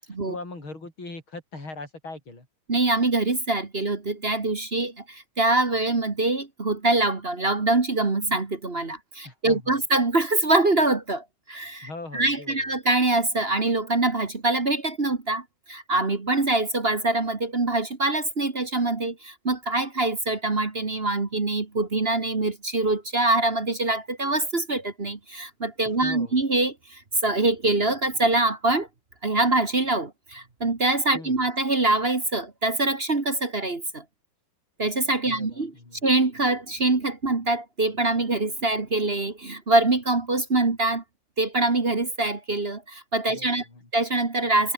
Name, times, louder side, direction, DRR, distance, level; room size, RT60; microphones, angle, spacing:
voice 1, 0.3-2.5 9.2-9.8 11.8-12.7 26.0-26.4 31.1-31.4 35.3-36.0 43.3-43.9, left 3 dB, 85° left, 7.6 m, -40 dB
voice 2, 2.7-28.9 29.2-34.0 34.8-35.7 36.0-41.0 41.4-43.7 43.9-44.7, right 2 dB, 30° right, 2.0 m, -24 dB
omnidirectional pair, 2.2 m